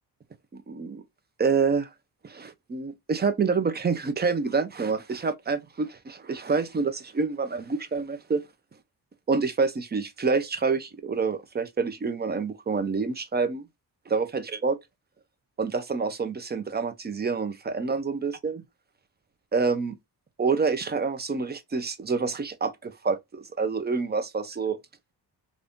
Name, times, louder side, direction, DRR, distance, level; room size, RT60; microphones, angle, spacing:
voice 1, 0.5-1.0 1.4-1.9 2.2-8.4 9.3-13.6 14.1-14.8 15.6-18.6 19.5-19.9 20.4-24.8, right 4 dB, 25° right, 0.5 m, -27 dB
2.6 x 2.5 x 3.5 m
cardioid pair, 105°, 41 cm